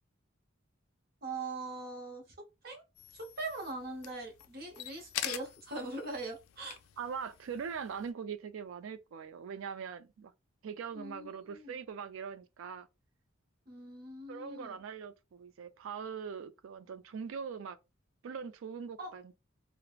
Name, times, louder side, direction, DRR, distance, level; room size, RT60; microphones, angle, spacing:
voice 1, 1.2-2.2 2.6-2.8 3.1-6.8 10.9-11.8 13.7-14.8 19.0-19.1, right 2 dB, 50° right, 0.7 m, -41 dB
sound 1, 3.0-8.1, left 11 dB, 90° left, 0.3 m, -45 dB
voice 2, 7.0-10.3 10.6-12.9 14.3-17.8 18.2-19.2, right 6 dB, 75° right, 0.3 m, -41 dB
3.2 x 2.0 x 2.3 m
head